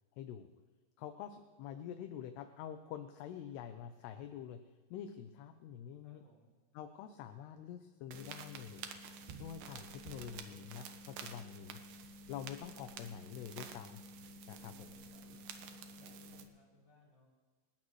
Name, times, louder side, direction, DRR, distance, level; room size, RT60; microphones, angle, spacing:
voice 1, 0.2-0.5 1.0-4.6 4.9-6.2 6.7-8.9 9.4-11.8 12.3-14.0 14.5-14.9, left 9 dB, 75° left, 7 dB, 2.7 m, -47 dB
voice 2, 6.0-6.5 9.9-10.7 14.5-17.3, left 1 dB, 25° left, -5 dB, 6.4 m, -66 dB
sound 1, 8.1-16.4, right 4 dB, 70° right, 2.4 m, -50 dB
29.5 x 15.0 x 3.2 m, 1.4 s
omnidirectional pair, 5.2 m